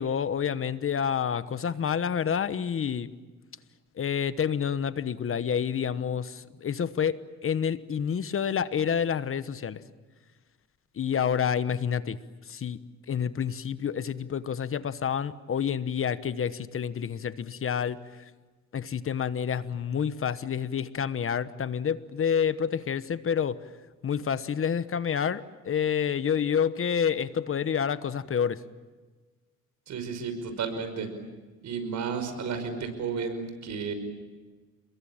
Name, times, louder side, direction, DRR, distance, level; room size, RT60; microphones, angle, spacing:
voice 1, 0.0-3.1 4.0-9.8 11.0-12.2 12.5-12.8 13.1-18.0 18.7-23.6 24.0-28.6, left 7 dB, 45° left, 14 dB, 1.2 m, -28 dB
voice 2, 29.9-31.1 31.6-33.9, right 5 dB, 70° right, 8 dB, 5.6 m, -32 dB
30.0 x 21.5 x 8.9 m, 1.3 s
cardioid pair, 90°, 30 cm